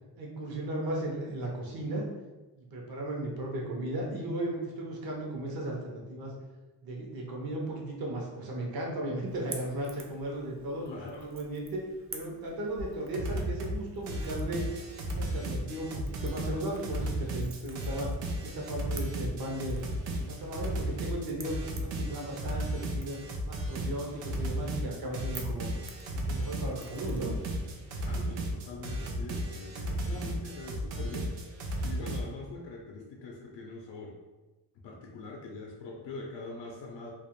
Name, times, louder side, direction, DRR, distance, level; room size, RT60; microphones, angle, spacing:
voice 1, 0.2-2.1 2.6-6.3 6.8-10.8 11.1-11.8 12.1-14.6 15.0-18.1 18.4-19.8 20.2-23.2 23.5-25.7 26.1-27.3, right 1 dB, 55° right, -2 dB, 0.8 m, -36 dB
Crackle / Crack, 9.3-27.6, right 4 dB, 35° right, 0.4 m, -51 dB
voice 2, 10.8-11.3 28.0-31.3 31.8-34.1 34.8-37.1, left 3 dB, 75° left, -1 dB, 0.5 m, -43 dB
sound 1, 12.8-12.9 13.1-13.8 14.1-32.2, right 1 dB, 90° right, 0.5 m, -34 dB
2.4 x 2.0 x 2.9 m, 1.1 s
cardioid pair, 60°, 43 cm